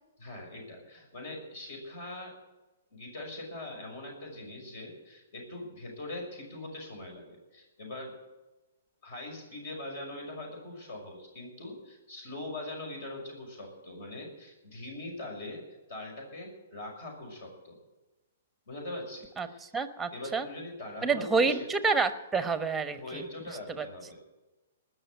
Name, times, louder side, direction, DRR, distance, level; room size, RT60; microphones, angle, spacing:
voice 1, 0.2-2.3 2.9-8.2 9.0-17.8 18.7-19.7 20.1-21.6 22.9-24.2, left 2 dB, 55° left, 1 dB, 6.1 m, -42 dB
voice 2, 19.4-20.5 21.0-23.3 23.8-23.9, right 4 dB, 5° right, 11 dB, 1.0 m, -28 dB
20.0 x 6.6 x 9.3 m, 1.1 s
hypercardioid pair, 145°, 0 cm